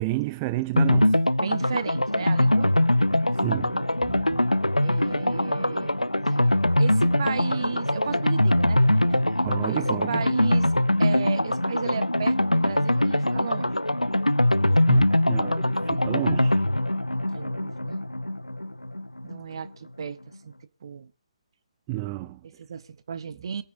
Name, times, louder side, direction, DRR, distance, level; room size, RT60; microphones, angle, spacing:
voice 1, 0.0-1.2 3.3-4.4 9.4-10.2 14.9-16.6 21.9-22.4, right 18 dB, 20° right, 0.5 m, -30 dB
sound 1, 0.8-19.4 19.6-19.7 20.0-20.1, left 1 dB, 90° left, 0.5 m, -23 dB
voice 2, 1.4-2.7 4.8-6.0 6.3-6.4 6.8-9.2 9.7-9.8 10.1-10.7 11.0-13.8 17.3-18.0 19.2-20.2 20.4-20.5 20.8-21.1 22.4-23.6, right 6 dB, 50° right, 1.0 m, -34 dB
22.5 x 9.5 x 2.6 m
figure-of-eight pair, 140°, 3 cm